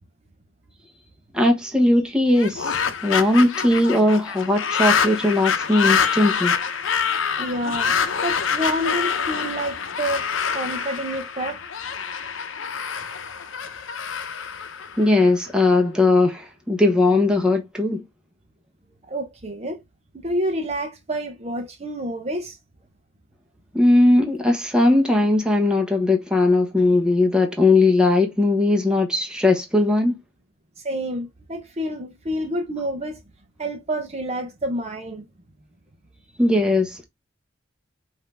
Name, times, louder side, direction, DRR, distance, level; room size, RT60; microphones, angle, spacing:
voice 1, 1.3-6.5 15.0-18.0 23.7-30.2 36.4-37.0, left 2 dB, 5° right, 1.1 m, -19 dB
sound 1, 2.3-15.5, left 6 dB, 80° left, 0.7 m, -26 dB
voice 2, 7.4-7.9 8.2-10.2 10.5-11.6 19.1-19.8 20.1-22.6 30.8-33.2 33.6-35.2, equal, 35° right, 0.8 m, -28 dB
5.5 x 2.8 x 3.3 m
head